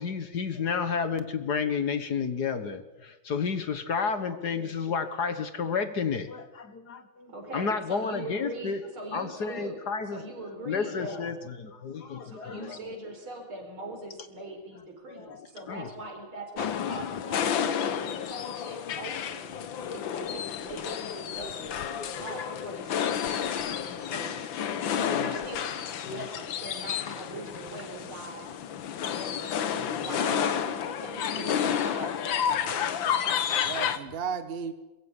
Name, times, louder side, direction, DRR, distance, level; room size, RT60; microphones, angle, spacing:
voice 1, 0.0-7.3 7.5-8.8 9.1-10.2 10.7-12.8 15.1-15.9 18.2-18.3 20.2-20.4 22.0-22.1 24.0-25.4 26.1-26.2 29.0-29.3, left 5 dB, 55° left, 1.8 m, -32 dB
voice 2, 7.3-11.4 12.2-19.5 19.9-24.5 24.9-28.7 29.0-33.4, right 2 dB, 80° right, 5.5 m, -42 dB
sound 1, 16.6-34.0, left 8 dB, 70° left, 1.8 m, -31 dB
voice 3, 30.1-30.6 31.4-31.8 33.6-34.7, right 6 dB, 30° right, 1.3 m, -35 dB
22.5 x 15.5 x 9.8 m
omnidirectional pair, 2.3 m